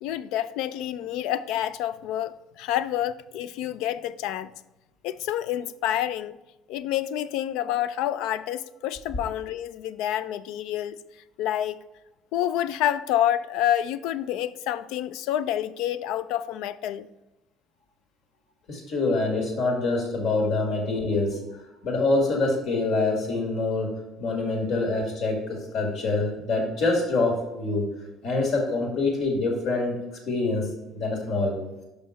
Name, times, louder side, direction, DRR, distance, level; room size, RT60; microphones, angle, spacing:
voice 1, 0.0-4.5 5.0-6.4 6.7-11.0 11.4-11.8 12.3-17.1, left 11 dB, 80° left, 0.3 m, -28 dB
voice 2, 18.7-21.4 21.8-23.9 24.2-27.9 28.2-30.0 30.3-30.7 30.9-31.6, left 3 dB, 60° left, 2.0 m, -25 dB
5.8 x 5.6 x 4.1 m
cardioid pair, 105°, 0 cm